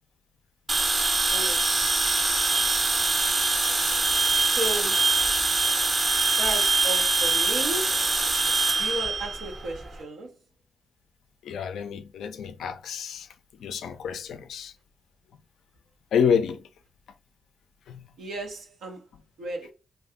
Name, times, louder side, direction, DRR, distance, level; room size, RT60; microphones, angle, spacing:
sound 1, 0.7-9.9, right 3 dB, 40° right, 0.6 m, -23 dB
voice 1, 1.3-1.7 4.4-5.1 6.4-8.0 8.8-10.3 18.2-19.1 19.4-19.7, right 2 dB, 85° right, 0.6 m, -34 dB
voice 2, 11.4-13.3 13.6-14.7 16.1-16.7 17.9-18.1, left 7 dB, 80° left, 0.3 m, -28 dB
2.7 x 2.2 x 3.5 m
supercardioid pair, 45°, 0 cm